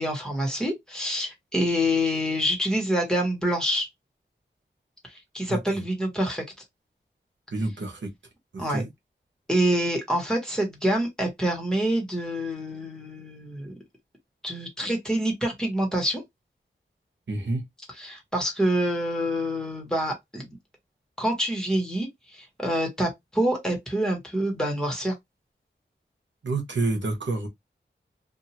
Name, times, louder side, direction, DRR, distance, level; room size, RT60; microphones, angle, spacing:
voice 1, 0.0-3.9 5.1-6.4 8.6-8.8 9.5-13.7 14.4-16.2 18.0-20.5 21.2-25.1, equal, 5° left, 1.4 m, -26 dB
voice 2, 5.5-5.8 7.5-8.1 8.7-8.9 17.3-17.6 26.4-27.5, right 2 dB, 75° right, 1.1 m, -28 dB
2.7 x 2.5 x 2.9 m
wide cardioid pair, 65°, 19 cm